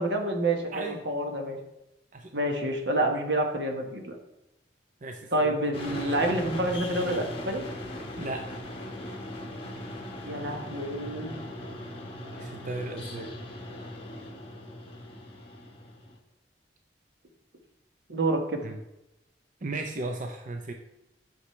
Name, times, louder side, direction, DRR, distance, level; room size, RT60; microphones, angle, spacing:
voice 1, 0.0-1.6 2.3-4.1 5.3-7.6 10.2-11.3 18.1-18.6, right 1 dB, 75° right, 3 dB, 1.3 m, -28 dB
voice 2, 0.7-1.1 2.1-2.3 5.0-5.5 8.2-8.5 12.4-13.3 18.6-18.8 19.6-20.7, right 2 dB, 45° right, 4 dB, 0.6 m, -36 dB
sound 1, 5.7-16.1, left 1 dB, 35° left, 1.3 m, -39 dB
9.9 x 6.4 x 3.2 m, 0.92 s
head